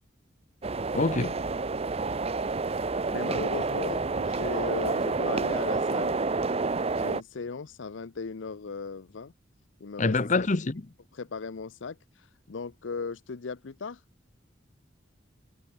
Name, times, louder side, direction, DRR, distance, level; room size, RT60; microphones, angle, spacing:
sound 1, 0.6-7.2, right 3 dB, 35° right, 0.8 m, -29 dB
voice 1, 0.9-1.4 10.0-10.9, left 3 dB, 40° left, 0.8 m, -25 dB
voice 2, 3.1-6.2 6.9-9.3 9.8-10.5 11.2-12.0 12.5-14.0, left 4 dB, 80° left, 0.6 m, -37 dB
head